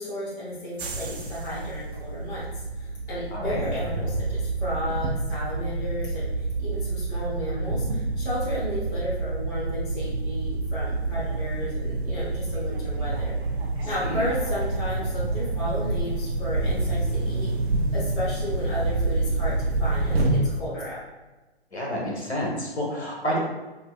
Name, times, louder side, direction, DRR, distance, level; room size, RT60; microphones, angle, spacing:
voice 1, 0.0-2.4 2.8-13.3 13.8-17.5 17.9-21.0, equal, 10° left, -8 dB, 0.6 m, -33 dB
sound 1, 0.8-20.4, right 2 dB, 70° right, 0.5 m, -28 dB
voice 2, 3.3-3.6 13.8-14.3 21.7-23.4, equal, 90° left, -2 dB, 0.9 m, -29 dB
2.7 x 2.6 x 2.2 m, 1.2 s
figure-of-eight pair, 125°, 32 cm